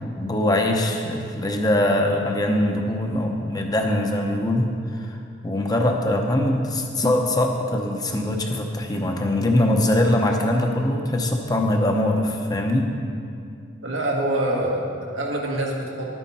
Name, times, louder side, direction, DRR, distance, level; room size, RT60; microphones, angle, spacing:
voice 1, 0.0-5.2 5.4-12.9, left 1 dB, 20° left, 2 dB, 0.7 m, -22 dB
voice 2, 13.8-16.1, right 1 dB, 85° right, -1 dB, 1.6 m, -25 dB
11.0 x 9.2 x 4.2 m, 2.5 s
head